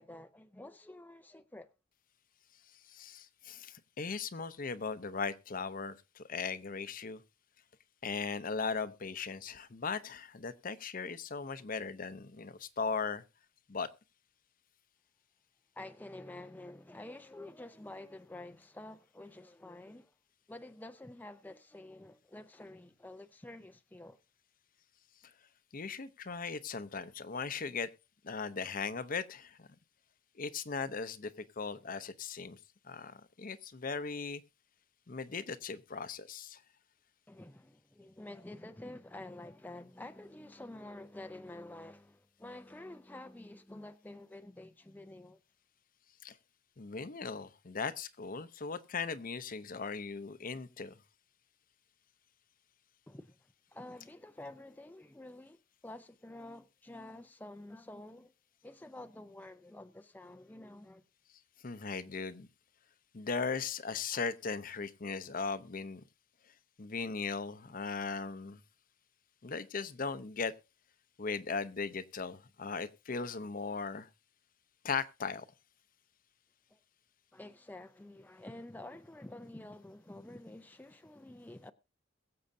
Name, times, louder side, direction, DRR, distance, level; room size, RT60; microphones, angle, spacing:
voice 1, 0.0-1.7 15.8-20.1 20.5-24.2 37.3-45.4 53.1-53.4 53.7-58.3 58.6-61.0 76.7-76.8 77.3-81.7, left 1 dB, 10° left, 0.5 m, -49 dB
voice 2, 2.9-7.2 8.0-13.2 13.7-13.9 25.7-27.9 28.2-29.7 30.4-32.6 32.8-34.4 35.1-36.6 46.2-46.4 46.8-50.9 61.6-62.5 63.1-66.0 66.8-68.6 69.4-70.5 71.2-74.1 74.8-75.4, left 5 dB, 45° left, 0.7 m, -38 dB
22.0 x 7.8 x 2.7 m
head